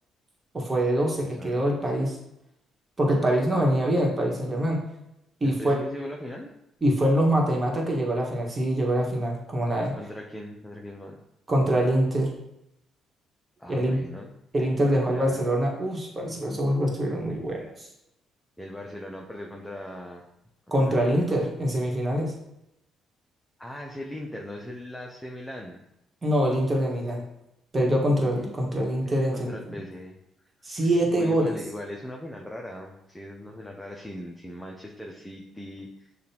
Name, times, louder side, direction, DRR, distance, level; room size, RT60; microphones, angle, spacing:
voice 1, 0.5-2.2 3.0-4.8 5.4-5.8 6.8-9.9 11.5-12.3 13.7-14.0 14.5-17.9 20.7-22.3 26.2-27.3 27.7-29.8 30.6-31.5, right 1 dB, 30° right, -1 dB, 1.4 m, -24 dB
voice 2, 1.2-1.6 5.4-6.5 9.9-11.2 13.6-14.3 14.8-15.5 18.6-20.2 20.7-21.3 23.6-25.8 28.4-30.2 30.7-36.1, left 1 dB, 10° left, 0 dB, 0.7 m, -39 dB
6.6 x 2.5 x 2.9 m, 0.84 s
hypercardioid pair, 55°, 0 cm